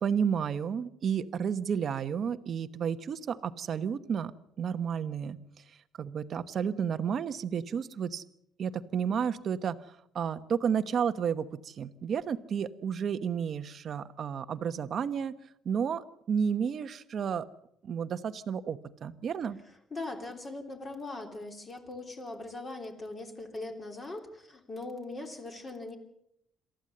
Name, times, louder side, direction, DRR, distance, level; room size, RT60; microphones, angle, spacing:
voice 1, 0.0-4.3 4.6-5.4 6.0-8.2 8.6-9.7 10.1-15.3 15.6-17.5 17.8-19.6, right 7 dB, 35° right, 11 dB, 1.1 m, -31 dB
voice 2, 19.9-26.0, left 2 dB, 20° left, 4 dB, 3.2 m, -40 dB
27.5 x 14.0 x 7.9 m, 0.77 s
cardioid pair, 165°, 0 cm